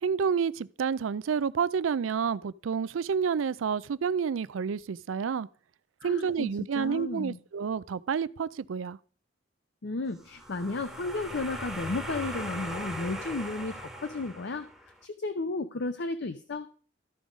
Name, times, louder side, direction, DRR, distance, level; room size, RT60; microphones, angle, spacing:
voice 1, 0.0-5.5 6.0-9.0, right 6 dB, 85° right, 0.4 m, -29 dB
voice 2, 6.0-6.5 6.7-7.4 9.8-14.7 15.0-16.7, left 3 dB, 60° left, 0.6 m, -33 dB
sound 1, 10.2-14.9, right 1 dB, ahead, 1.2 m, -39 dB
13.5 x 5.3 x 4.9 m
head